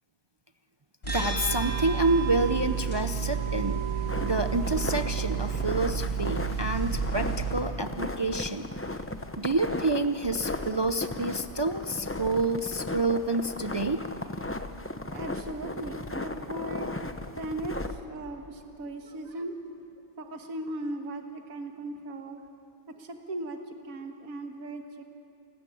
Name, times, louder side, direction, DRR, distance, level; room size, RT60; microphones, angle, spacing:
sound 1, 1.0-7.5, right 6 dB, 45° left, 7.5 m, -30 dB
voice 1, 1.1-3.9 4.2-8.7 9.4-14.1, right 2 dB, 35° right, 8 dB, 0.4 m, -28 dB
sound 2, 4.1-18.0, left 2 dB, 10° left, 0.7 m, -36 dB
voice 2, 15.1-19.6 20.2-22.4 23.0-25.0, right 1 dB, 80° right, 4 dB, 1.8 m, -38 dB
28.5 x 15.0 x 9.9 m, 2.9 s
omnidirectional pair, 1.5 m